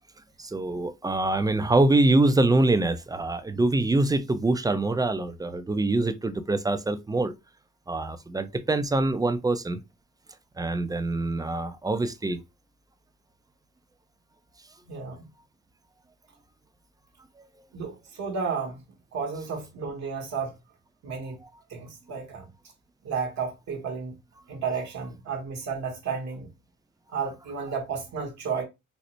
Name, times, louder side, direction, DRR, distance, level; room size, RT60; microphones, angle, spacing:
voice 1, 0.4-7.3 7.9-9.8 10.6-12.4, right 2 dB, 15° right, 0.4 m, -24 dB
voice 2, 14.8-15.3 17.7-18.8 19.1-20.6 21.0-21.4 21.7-22.5 23.0-24.1 24.5-26.5 27.1-28.6, right 5 dB, 60° right, 1.0 m, -32 dB
4.0 x 2.1 x 3.0 m
cardioid pair, 90°, 30 cm